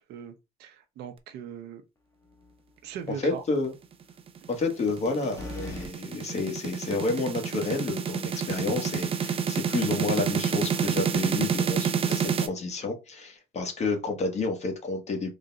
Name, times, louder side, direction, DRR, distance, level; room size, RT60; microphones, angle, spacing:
voice 1, 0.6-1.8 2.8-3.4, right 8 dB, 75° right, 0.7 m, -39 dB
sound 1, 2.2-2.7 3.1-3.2 5.4-5.9, left 2 dB, 20° left, 1.0 m, -39 dB
voice 2, 3.2-3.7 4.5-15.3, left 3 dB, 40° left, 1.2 m, -30 dB
sound 2, 4.4-12.5, right 7 dB, 35° right, 0.5 m, -28 dB
3.9 x 2.2 x 3.8 m
cardioid pair, 110°, 17 cm